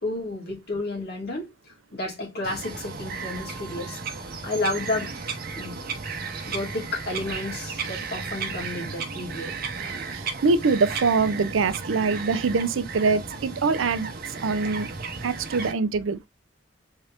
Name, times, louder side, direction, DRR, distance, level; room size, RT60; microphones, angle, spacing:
voice 1, 0.0-1.5 1.9-4.0 4.4-5.1 5.6-5.8 6.5-9.5, left 2 dB, 55° left, 2.0 m, -31 dB
Bird vocalization bird call bird song, 2.4-15.7, right 4 dB, 50° right, 0.8 m, -34 dB
voice 2, 10.1-14.1 14.4-14.9 15.2-16.2, right 4 dB, 80° right, 0.5 m, -24 dB
3.7 x 3.3 x 2.8 m
head